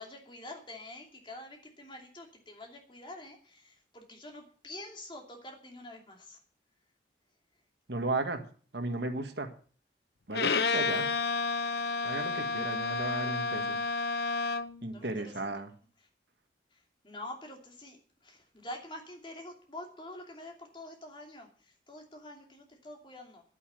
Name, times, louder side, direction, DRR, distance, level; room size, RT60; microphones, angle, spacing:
voice 1, 0.0-6.4 14.8-15.1 17.0-18.0 18.2-21.5 21.9-23.4, left 1 dB, 25° left, 2 dB, 2.8 m, -46 dB
voice 2, 7.9-8.4 8.7-9.5 10.3-11.1 12.0-13.8 14.8-15.7, right 2 dB, 70° right, 7 dB, 1.6 m, -35 dB
Bowed string instrument, 10.3-14.8, left 4 dB, 65° left, 0.7 m, -30 dB
10.5 x 9.9 x 7.5 m, 0.43 s
head